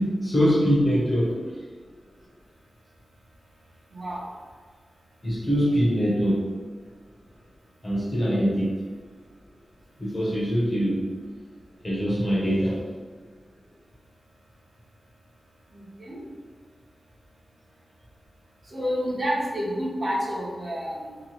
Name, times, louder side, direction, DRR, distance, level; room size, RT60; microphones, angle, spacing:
voice 1, 0.0-1.4 5.2-6.5 7.8-8.7 10.0-11.0 11.8-12.8, equal, 20° left, -5 dB, 0.7 m, -23 dB
voice 2, 3.9-4.3 15.7-16.2 18.7-21.2, equal, 50° right, -6 dB, 0.8 m, -29 dB
2.9 x 2.2 x 2.9 m, 1.5 s
wide cardioid pair, 95°, 0 cm